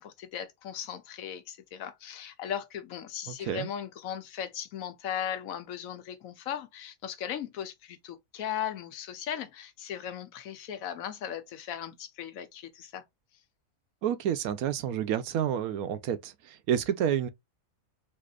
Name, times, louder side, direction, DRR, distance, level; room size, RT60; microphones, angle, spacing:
voice 1, 0.0-13.0, left 9 dB, 75° left, 1.1 m, -37 dB
voice 2, 3.3-3.7 14.0-17.3, right 9 dB, 85° right, 1.1 m, -29 dB
4.1 x 2.7 x 2.4 m
omnidirectional pair, 1.5 m